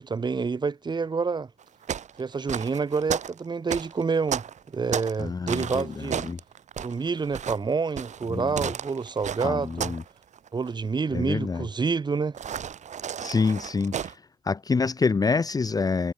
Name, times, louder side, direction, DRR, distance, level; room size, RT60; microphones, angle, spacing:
voice 1, 0.0-1.5 2.2-4.4 4.7-6.2 6.8-9.9 10.5-12.4, right 5 dB, 25° right, 2.3 m, -28 dB
sound 1, 1.6-5.2 5.5-10.1 10.3-10.7 12.3-14.1, right 8 dB, 45° right, 2.5 m, -33 dB
voice 2, 5.2-6.4 8.3-8.5 9.4-10.0 11.1-11.7 13.2-14.2 14.4-16.1, left 4 dB, 20° left, 1.1 m, -26 dB
cardioid pair, 110°, 17 cm